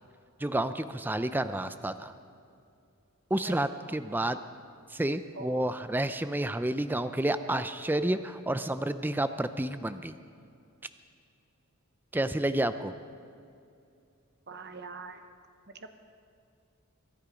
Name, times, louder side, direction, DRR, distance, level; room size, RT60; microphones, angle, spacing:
voice 1, 0.4-2.1 3.3-4.4 4.9-10.2 12.1-12.9, right 1 dB, 10° right, 11 dB, 0.4 m, -30 dB
voice 2, 3.4-4.3 5.3-5.7 14.5-15.2 15.7-16.0, right 3 dB, 50° right, 8 dB, 1.0 m, -44 dB
23.0 x 10.0 x 5.1 m, 2.5 s
head